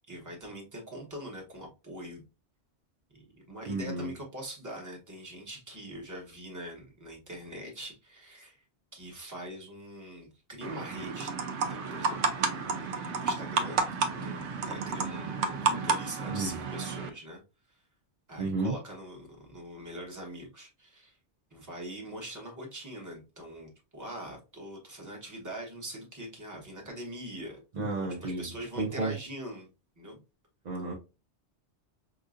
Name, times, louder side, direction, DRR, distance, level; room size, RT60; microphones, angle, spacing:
voice 1, 0.1-2.2 3.1-8.6 8.9-12.7 13.1-17.4 17.7-17.8 18.3-21.2 21.5-27.6 28.0-29.7 30.0-30.2, right 1 dB, 15° right, -1 dB, 1.1 m, -43 dB
voice 2, 3.7-4.1 16.3-16.5 18.4-18.8 27.7-29.1 30.6-30.9, right 3 dB, 45° right, -2 dB, 0.7 m, -32 dB
sound 1, 10.6-17.1, right 4 dB, 80° right, 0.9 m, -31 dB
4.9 x 2.6 x 2.4 m, 0.30 s
omnidirectional pair, 1.2 m